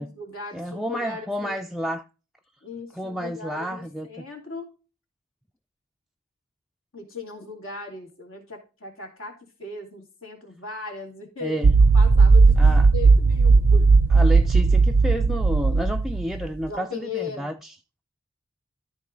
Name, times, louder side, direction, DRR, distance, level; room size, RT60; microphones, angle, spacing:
voice 1, 0.0-1.6 2.6-4.7 6.9-9.3 9.6-11.6 11.9-13.9 16.7-17.5, left 4 dB, 70° left, 2.8 m, -37 dB
voice 2, 0.5-2.1 2.9-4.1 11.4-11.7 12.6-12.9 14.1-17.7, equal, ahead, 0.3 m, -30 dB
sound 1, 11.6-16.5, right 4 dB, 85° right, 0.5 m, -16 dB
13.5 x 4.6 x 3.8 m
head